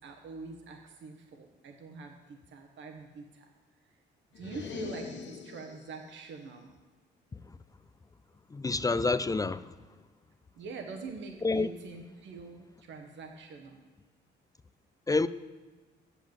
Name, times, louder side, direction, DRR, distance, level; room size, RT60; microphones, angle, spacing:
voice 1, 0.0-3.5 4.3-6.7 10.5-13.8, right 4 dB, 70° right, 1.1 m, -44 dB
sound 1, 4.3-6.0, left 5 dB, 65° left, 1.2 m, -41 dB
voice 2, 8.5-9.7 11.4-11.7 15.1-15.3, left 3 dB, 20° left, 0.3 m, -28 dB
8.2 x 7.2 x 7.6 m
cardioid pair, 90°, 20 cm